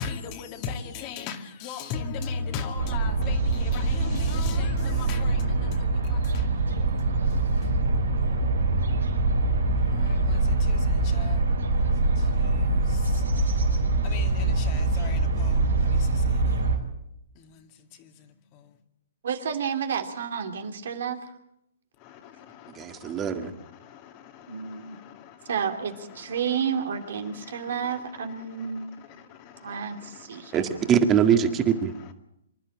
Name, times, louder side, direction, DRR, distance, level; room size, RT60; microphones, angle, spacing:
voice 1, 0.0-6.5 9.8-11.4 11.8-13.6 14.0-16.6 17.4-17.7 18.0-18.1 22.0-25.5 27.5-27.6 28.6-28.7 29.2-30.9 31.9-32.1, left 5 dB, 35° left, 2.3 m, -39 dB
sound 1, 2.8-16.8, right 2 dB, 85° right, 4.7 m, -24 dB
voice 2, 19.2-21.3 24.5-25.0 25.5-30.6, right 7 dB, 70° right, 2.7 m, -31 dB
voice 3, 22.8-23.5 30.5-31.9, right 8 dB, 20° right, 2.0 m, -22 dB
25.5 x 11.5 x 8.8 m
hypercardioid pair, 135°, 0 cm